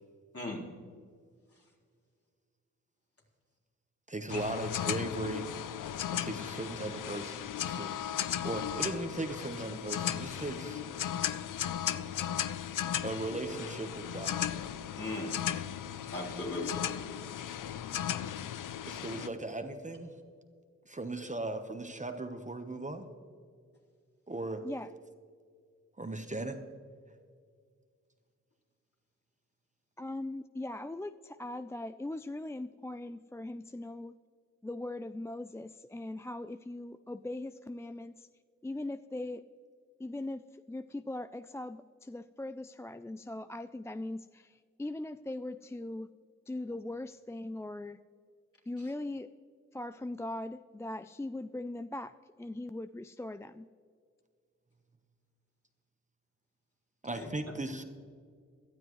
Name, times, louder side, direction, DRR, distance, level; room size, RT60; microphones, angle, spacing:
voice 1, 4.1-5.5 6.1-7.9 8.4-10.8 13.0-14.4 18.8-20.1 20.9-23.1 24.3-24.6 26.0-26.6 57.0-57.8, right 2 dB, 25° right, 6 dB, 1.1 m, -37 dB
sound 1, 4.3-19.3, left 10 dB, 80° left, 0.5 m, -36 dB
voice 2, 14.9-15.3 16.0-16.9 48.8-48.9 57.1-57.5, left 2 dB, 45° left, -3 dB, 3.9 m, -39 dB
voice 3, 30.0-34.2 34.6-38.3 38.6-39.4 40.0-46.1 46.5-48.0 48.7-49.3 49.7-52.1 52.4-53.7, left 2 dB, 10° left, 11 dB, 0.3 m, -40 dB
17.5 x 12.5 x 3.1 m, 2.1 s
cardioid pair, 50°, 31 cm